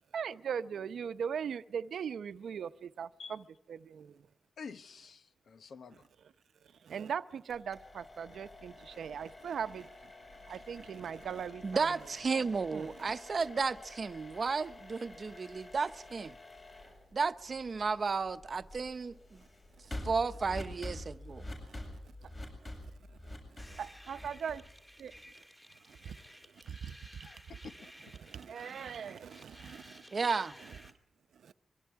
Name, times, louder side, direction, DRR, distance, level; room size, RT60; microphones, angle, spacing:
voice 1, 0.1-4.3 6.8-10.1 10.5-11.8 12.7-13.1 19.8-20.1 21.7-21.8 22.2-22.3 23.1-24.7 25.0-25.1 25.9-27.3 28.2-30.1 30.6-30.8 31.3-31.5, right 7 dB, 85° right, 0.7 m, -40 dB
voice 2, 4.6-6.1 27.2-27.9, left 5 dB, 70° left, 1.1 m, -49 dB
sound 1, 7.5-25.4, left 1 dB, 35° left, 7.9 m, -48 dB
voice 3, 11.6-16.3 17.1-19.4 20.0-21.5 30.1-30.6, right 4 dB, 45° right, 0.8 m, -33 dB
sound 2, 23.6-30.9, equal, 10° left, 2.8 m, -55 dB
25.0 x 23.0 x 4.7 m
wide cardioid pair, 115°, 0 cm